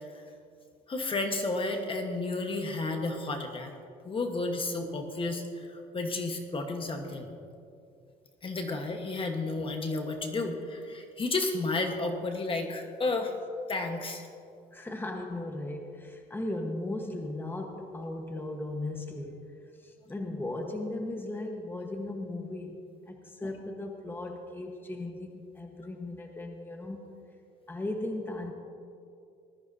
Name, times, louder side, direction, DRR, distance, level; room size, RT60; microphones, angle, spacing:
voice 1, 0.9-3.7 4.0-7.4 8.4-13.3 13.7-14.2, left 3 dB, 30° left, 4 dB, 1.3 m, -32 dB
voice 2, 14.7-19.4 19.8-22.8 23.1-27.0 27.7-28.5, left 2 dB, 10° left, 3 dB, 1.3 m, -37 dB
19.5 x 13.5 x 2.8 m, 2.5 s
cardioid pair, 110°, 17 cm